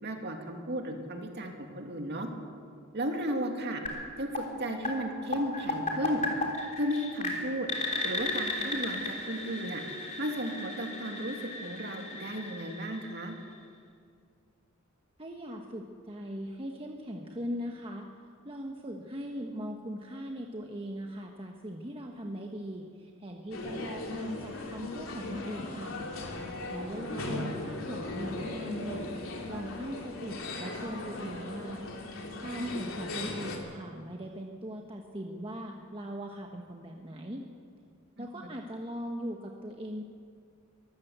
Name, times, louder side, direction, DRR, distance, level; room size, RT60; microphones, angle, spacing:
voice 1, 0.0-2.3 2.9-3.8 4.2-6.2 6.8-7.7 8.0-9.8 10.2-13.3 26.8-27.1 38.2-38.3, right 1 dB, 50° right, 3 dB, 2.6 m, -34 dB
sound 1, 3.9-13.7, left 2 dB, 35° left, 3.5 m, -36 dB
voice 2, 15.2-18.1 18.4-26.0 26.7-29.0 29.5-31.8 32.4-37.4 38.2-40.0, equal, 25° right, 1 dB, 1.3 m, -39 dB
sound 2, 23.5-33.6, left 2 dB, 70° left, 3.3 m, -38 dB
23.5 x 14.5 x 8.1 m, 2.2 s
head